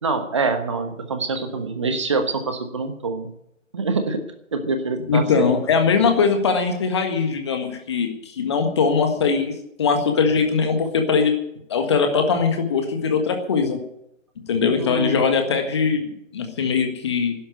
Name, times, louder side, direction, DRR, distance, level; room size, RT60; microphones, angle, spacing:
voice 1, 0.0-3.3 3.7-4.2 4.5-5.6 14.8-15.2, right 3 dB, 25° right, 7 dB, 1.1 m, -25 dB
voice 2, 5.1-9.5 9.8-11.3 11.7-13.8 14.5-17.3, left 5 dB, 20° left, 5 dB, 1.6 m, -21 dB
12.0 x 10.5 x 9.3 m, 0.78 s
figure-of-eight pair, 150°, 39 cm